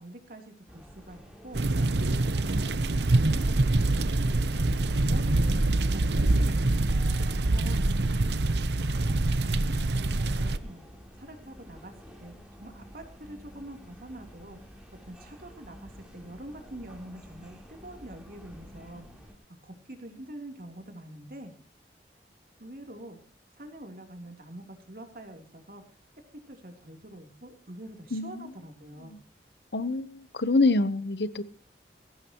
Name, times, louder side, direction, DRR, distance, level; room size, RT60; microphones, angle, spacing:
voice 1, 0.0-1.6 2.5-6.5 7.5-7.8 8.7-10.9 11.2-11.9 12.2-14.6 15.0-19.4 19.6-21.5 22.6-23.2 23.5-25.8 26.3-29.2, right 1 dB, 55° right, 4 dB, 3.5 m, -45 dB
sound 1, 0.7-19.3, equal, 5° right, 3.9 m, -50 dB
sound 2, 1.5-10.6, right 2 dB, 75° right, 0.9 m, -25 dB
voice 2, 28.1-28.5 29.1-29.2 29.7-31.4, left 3 dB, 70° left, 14 dB, 1.1 m, -26 dB
21.0 x 17.0 x 3.1 m, 0.38 s
head